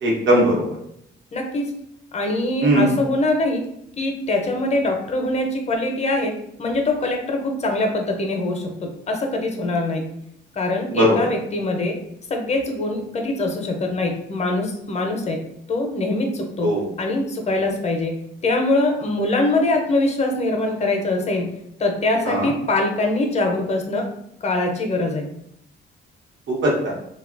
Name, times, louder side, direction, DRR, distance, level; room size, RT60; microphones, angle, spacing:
voice 1, 0.0-0.8 2.6-2.9 10.9-11.2 16.6-16.8 22.2-22.5 26.5-26.9, right 1 dB, 70° right, -2 dB, 1.0 m, -19 dB
voice 2, 1.3-1.7 2.1-3.6 4.0-6.3 6.6-10.0 10.5-12.0 12.3-15.4 15.7-16.7 17.0-18.2 18.4-21.5 21.8-24.1 24.4-25.2, left 2 dB, 35° left, 2 dB, 0.6 m, -23 dB
2.9 x 2.2 x 2.4 m, 0.75 s
cardioid pair, 90°, 20 cm